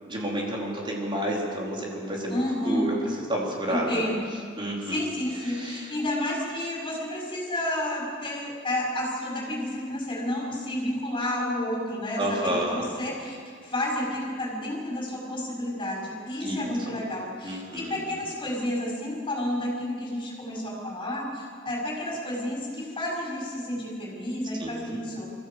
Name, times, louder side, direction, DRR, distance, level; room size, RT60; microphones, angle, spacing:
voice 1, 0.1-2.9 3.3-4.0 4.6-5.1 5.4-5.9 12.2-12.8 16.4-16.9 17.4-18.2 24.6-25.0, right 1 dB, 25° right, -3 dB, 4.2 m, -30 dB
voice 2, 2.3-2.8 3.7-4.2 4.8-13.4 13.6-25.3, left 1 dB, 25° left, -4 dB, 6.4 m, -31 dB
22.5 x 15.0 x 8.2 m, 2.1 s
head